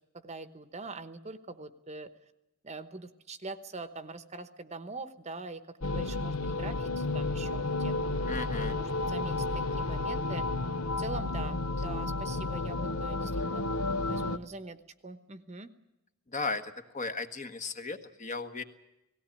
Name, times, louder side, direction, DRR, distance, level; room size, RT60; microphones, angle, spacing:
voice 1, 0.2-2.1 2.6-7.9 8.6-10.5 11.0-14.8 15.0-15.7, right 3 dB, 30° right, 11 dB, 1.0 m, -43 dB
sound 1, 5.8-14.4, left 2 dB, 70° left, 0.9 m, -32 dB
voice 2, 8.3-8.8 16.3-18.6, left 3 dB, 35° left, 8 dB, 1.4 m, -36 dB
18.5 x 17.0 x 9.9 m, 0.92 s
head